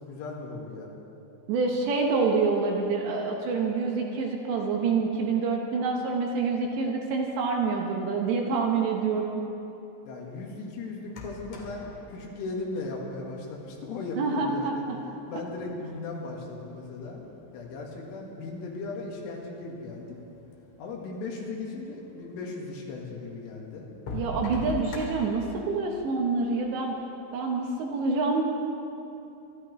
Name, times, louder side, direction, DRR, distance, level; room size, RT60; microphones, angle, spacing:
voice 1, 0.1-0.9 10.1-14.8 15.3-17.2 17.5-20.2 20.8-23.9, left 3 dB, 75° left, -1 dB, 4.1 m, -37 dB
voice 2, 1.5-9.4 14.2-15.0 15.3-15.4 24.1-26.9 27.3-28.4, right 4 dB, 70° right, 1 dB, 3.0 m, -27 dB
sound 1, 11.1-13.4 14.4-14.5 15.1-16.3 16.9-17.7 18.5-18.6 18.8-18.9 19.5-19.6 19.9-20.7 22.3-22.4 23.0-23.1 23.7-25.6, left 2 dB, 55° left, 2.5 m, -39 dB
25.5 x 13.0 x 3.2 m, 2.9 s
omnidirectional pair, 5.8 m